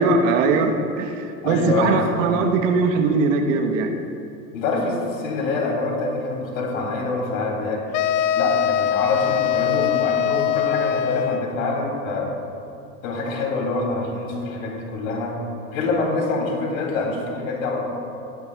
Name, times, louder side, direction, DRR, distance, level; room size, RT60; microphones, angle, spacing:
voice 1, 0.0-3.9, right 4 dB, 65° right, 4 dB, 1.4 m, -20 dB
voice 2, 1.4-2.0 2.4-2.5 4.5-7.8 8.3-12.3 13.0-15.4 15.7-17.8, left 3 dB, 75° left, 0 dB, 3.2 m, -25 dB
sound 1, 7.9-11.6, left 10 dB, 55° left, 0.6 m, -22 dB
17.0 x 13.0 x 2.4 m, 2.6 s
hypercardioid pair, 90°, 41 cm